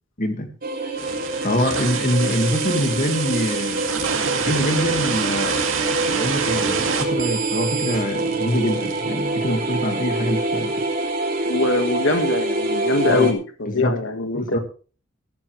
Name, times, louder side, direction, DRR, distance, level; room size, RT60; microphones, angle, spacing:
voice 1, 0.2-0.6 1.4-3.8 4.4-5.6 6.1-10.9 13.0-13.3 13.6-14.1 14.4-14.6, left 1 dB, 40° left, 2.0 m, -24 dB
sound 1, 0.6-13.3, right 2 dB, 45° right, 2.9 m, -26 dB
sound 2, 1.0-9.0, right 6 dB, 70° right, 2.3 m, -27 dB
voice 2, 11.5-14.6, left 2 dB, 65° left, 1.8 m, -22 dB
14.0 x 13.0 x 3.3 m
head